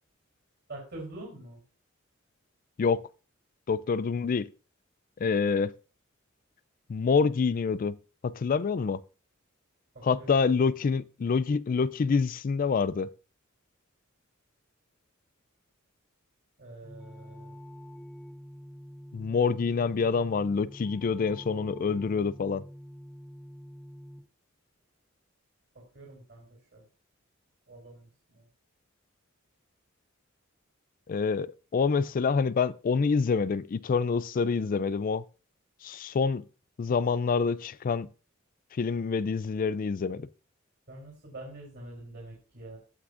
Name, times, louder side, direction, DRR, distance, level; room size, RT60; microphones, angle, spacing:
voice 1, 0.7-1.6 9.9-10.3 16.6-17.6 25.7-26.5 26.7-26.8 27.7-28.4 40.9-42.8, right 2 dB, 55° right, 3.5 m, -45 dB
voice 2, 3.7-4.5 5.2-5.7 6.9-8.0 8.2-9.0 10.0-13.1 19.1-22.6 31.1-35.2 35.8-36.4 36.8-38.1 38.7-40.3, left 5 dB, 45° left, 0.4 m, -27 dB
sound 1, 16.8-24.2, equal, 10° left, 1.6 m, -46 dB
16.0 x 6.0 x 2.5 m
head